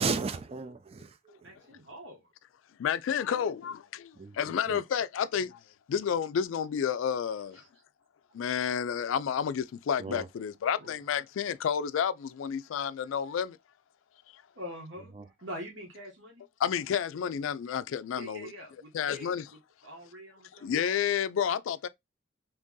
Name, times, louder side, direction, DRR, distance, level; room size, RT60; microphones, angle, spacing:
voice 1, 0.0-1.4 4.2-4.4 4.7-4.8 10.0-10.3 15.2-15.3, right 4 dB, 30° right, 0.4 m, -34 dB
voice 2, 1.4-2.3 7.5-7.7 10.8-11.0 14.6-15.1 15.4-16.4 18.1-19.3 19.8-20.7, equal, 70° right, 1.0 m, -44 dB
voice 3, 2.8-5.6 5.9-7.6 8.3-13.6 14.3-14.4 16.6-18.5 18.9-19.5 20.6-21.9, left 8 dB, 80° left, 0.3 m, -30 dB
2.9 x 2.7 x 3.6 m
head